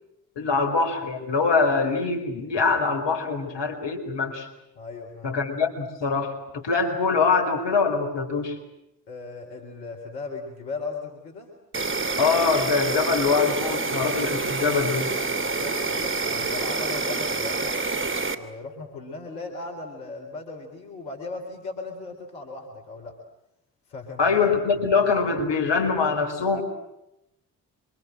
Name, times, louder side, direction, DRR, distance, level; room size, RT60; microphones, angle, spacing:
voice 1, 0.4-4.5 5.2-8.6 12.2-15.1 24.2-26.6, left 4 dB, 55° left, 5 dB, 4.9 m, -23 dB
voice 2, 4.8-5.3 9.1-11.5 14.9-17.8 18.2-23.2 23.9-24.4 24.8-24.9 26.5-26.6, left 3 dB, 80° left, 2 dB, 4.1 m, -37 dB
Insect, 11.7-18.3, right 3 dB, 25° right, 3.1 m, -27 dB
27.0 x 26.5 x 7.7 m, 0.86 s
hypercardioid pair, 45°, 50 cm